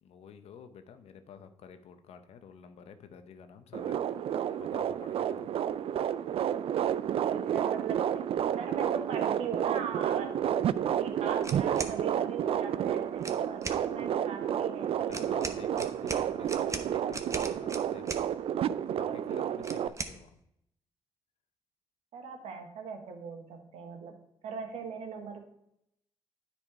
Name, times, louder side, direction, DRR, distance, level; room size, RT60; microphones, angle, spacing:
voice 1, 0.0-4.0 4.6-5.5 15.0-18.2 18.9-20.4, left 7 dB, 70° left, 9 dB, 0.7 m, -50 dB
sound 1, 3.7-19.9, right 9 dB, 60° right, 0.3 m, -30 dB
voice 2, 7.0-8.2 8.6-10.4 11.0-15.6 22.1-24.2 24.4-25.5, right 6 dB, 75° right, 5 dB, 1.2 m, -40 dB
sound 2, 11.4-12.0 13.2-13.8 15.1-18.3 19.6-20.2, right 3 dB, 30° right, 1.0 m, -39 dB
9.7 x 4.3 x 4.6 m, 0.78 s
supercardioid pair, 50°, 11 cm